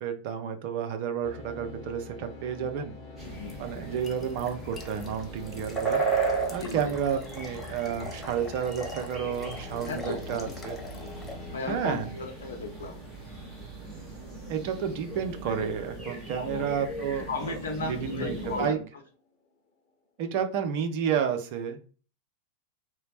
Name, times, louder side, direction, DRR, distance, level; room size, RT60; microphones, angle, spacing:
voice 1, 0.0-2.9 3.6-6.0 6.5-10.8 11.7-12.2 14.5-17.6 17.9-18.8 20.2-21.8, right 8 dB, 45° right, 6 dB, 0.4 m, -31 dB
sound 1, 1.2-19.5, left 3 dB, 35° left, 0.9 m, -47 dB
voice 2, 3.2-3.7 5.7-5.8 6.5-6.9 9.8-10.5 11.5-13.0 16.4-16.7 17.3-18.8, left 3 dB, 65° left, 4 dB, 0.5 m, -36 dB
sound 2, 3.2-18.7, right 4 dB, 15° right, 1.1 m, -36 dB
sound 3, 3.5-11.3, left 2 dB, 15° left, 0.5 m, -45 dB
2.8 x 2.0 x 2.8 m, 0.38 s
figure-of-eight pair, 90°, 0 cm